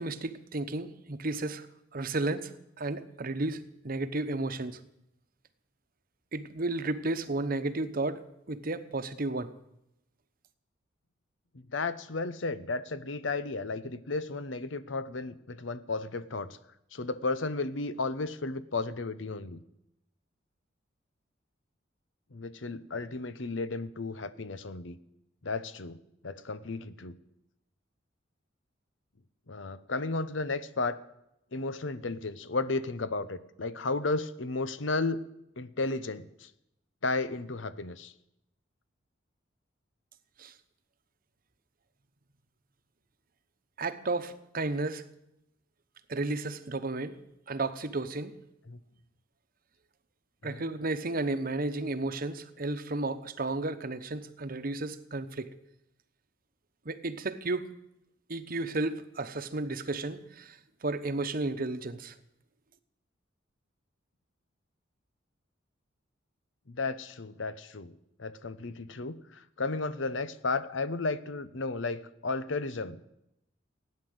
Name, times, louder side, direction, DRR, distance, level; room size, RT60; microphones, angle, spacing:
voice 1, 0.0-1.7 1.9-2.5 2.8-4.8 6.3-9.5 40.4-40.5 43.8-45.0 46.1-47.2 47.5-48.3 50.4-55.5 56.8-57.7 58.3-62.1, right 2 dB, 50° right, 11 dB, 1.0 m, -33 dB
voice 2, 11.5-16.6 16.9-19.6 22.3-25.0 25.4-26.0 26.2-27.2 29.5-31.0 31.5-35.2 35.6-36.5 37.0-38.1 48.7-48.8 50.4-50.7 66.7-73.0, left 3 dB, 75° left, 14 dB, 0.9 m, -34 dB
17.0 x 9.7 x 8.0 m, 0.84 s
head